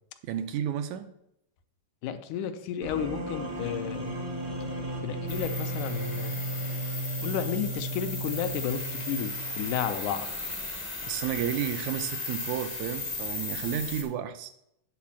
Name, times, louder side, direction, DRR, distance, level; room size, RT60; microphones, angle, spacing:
voice 1, 0.2-1.1 11.0-14.5, right 10 dB, 80° right, 9 dB, 1.9 m, -32 dB
voice 2, 2.0-4.2 5.0-6.4 7.2-10.3, left 9 dB, 80° left, 8 dB, 2.1 m, -32 dB
sound 1, 2.8-9.8, right 1 dB, 60° right, 0.7 m, -35 dB
sound 2, 5.3-14.0, left 2 dB, 50° left, 0.4 m, -36 dB
9.4 x 4.2 x 7.2 m, 0.78 s
omnidirectional pair, 3.5 m